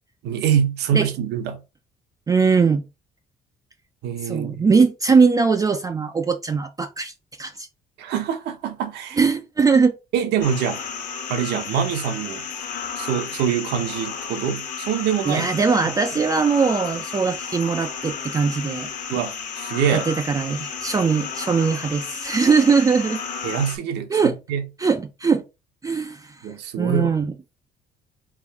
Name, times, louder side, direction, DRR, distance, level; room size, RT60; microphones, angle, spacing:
voice 1, 0.2-1.6 4.0-4.7 8.0-9.2 10.1-10.8 11.3-12.4 13.0-15.5 19.1-20.1 23.4-24.7 26.4-27.2, right 8 dB, 80° right, 1.0 m, -25 dB
voice 2, 2.3-2.8 4.2-7.1 7.4-7.7 9.2-9.9 15.3-18.9 19.9-23.2 24.1-24.4 24.8-25.4 25.8-26.3 26.8-27.3, right 5 dB, 20° right, 0.4 m, -20 dB
sound 1, 10.4-23.8, left 6 dB, 50° left, 1.1 m, -33 dB
3.5 x 2.6 x 4.6 m
cardioid pair, 110°, 17 cm